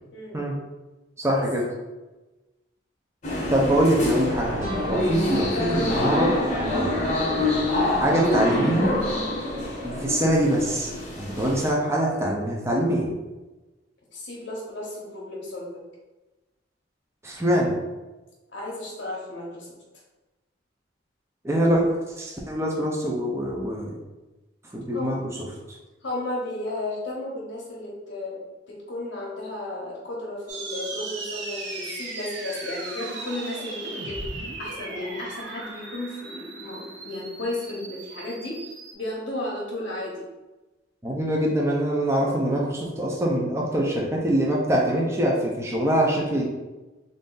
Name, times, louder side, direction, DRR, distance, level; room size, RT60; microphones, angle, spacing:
voice 1, 0.1-0.5 1.3-1.4 9.5-9.7 11.3-11.6 14.1-15.8 18.5-19.7 24.9-25.2 26.0-28.4 28.7-40.2, left 1 dB, 65° left, -4 dB, 0.8 m, -34 dB
voice 2, 1.2-1.6 3.5-7.6 8.0-8.9 9.8-10.9 11.2-13.1 17.2-17.8 21.4-23.9 24.7-25.2 41.0-46.4, right 1 dB, 15° right, -2 dB, 0.5 m, -24 dB
sound 1, 3.2-11.7, left 1 dB, 35° left, 0.9 m, -26 dB
sound 2, 4.6-7.3, equal, 35° right, 1.1 m, -39 dB
sound 3, 30.5-38.9, right 3 dB, 65° right, 0.6 m, -37 dB
3.2 x 2.6 x 3.8 m, 1.1 s
head